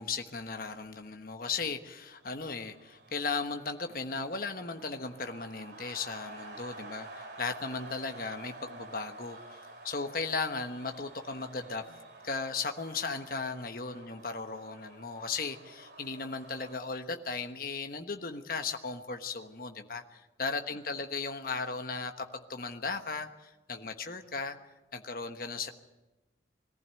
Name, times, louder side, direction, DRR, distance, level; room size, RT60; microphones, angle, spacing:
voice 1, 0.0-24.6 24.9-25.7, left 4 dB, 50° left, 6 dB, 1.3 m, -36 dB
sound 1, 2.0-16.8, right 2 dB, 65° right, 3.2 m, -50 dB
22.0 x 15.0 x 9.0 m, 1.1 s
head